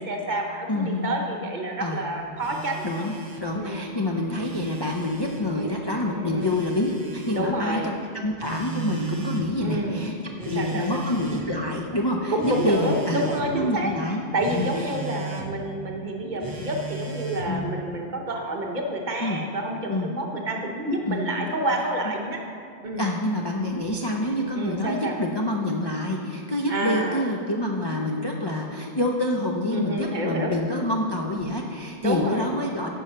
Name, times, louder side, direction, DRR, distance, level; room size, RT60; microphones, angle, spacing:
voice 1, 0.0-3.1 3.6-3.8 5.5-5.8 6.1-6.5 7.3-7.9 9.6-10.0 10.4-11.0 12.3-13.9 14.3-22.4 22.8-23.1 24.5-25.2 26.7-27.2 29.7-30.5 32.0-32.5, right 1 dB, 40° right, 1 dB, 0.9 m, -29 dB
voice 2, 0.7-1.1 1.8-2.1 2.8-10.1 10.4-14.2 14.5-15.0 16.2-16.3 17.5-17.8 19.2-19.4 19.9-20.1 21.0-21.3 23.0-32.9, left 1 dB, 35° left, 0 dB, 0.4 m, -27 dB
Telephone, 2.4-3.5 4.2-5.5 6.4-7.5 8.4-9.5 10.4-11.5 12.4-13.5 14.4-15.5 16.4-17.6, right 4 dB, 20° right, 0.6 m, -36 dB
10.0 x 5.5 x 5.5 m, 2.4 s
omnidirectional pair, 1.3 m